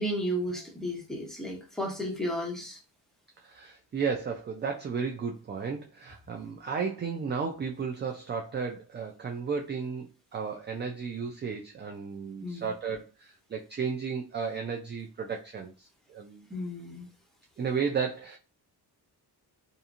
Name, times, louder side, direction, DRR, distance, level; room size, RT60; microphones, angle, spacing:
voice 1, 0.0-2.8 12.4-12.7 16.5-17.1, equal, ahead, -1 dB, 1.0 m, -33 dB
voice 2, 3.4-10.1 10.3-16.5 17.6-18.4, right 5 dB, 30° right, 2 dB, 0.3 m, -33 dB
2.8 x 2.6 x 2.4 m, 0.32 s
cardioid pair, 85°, 40 cm